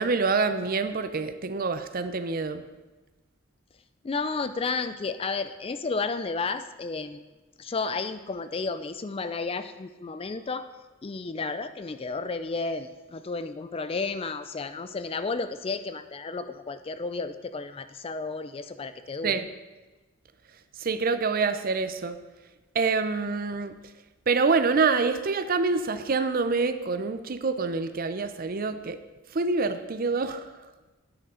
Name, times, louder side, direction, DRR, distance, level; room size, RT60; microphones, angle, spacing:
voice 1, 0.0-2.6 19.2-19.5 20.8-22.2 22.7-23.7 24.3-29.0 29.3-30.5, right 4 dB, 40° right, 11 dB, 0.5 m, -26 dB
voice 2, 4.0-7.2 7.6-10.7 11.0-19.4, left 4 dB, 25° left, 11 dB, 0.4 m, -32 dB
10.5 x 9.1 x 3.8 m, 1.2 s
head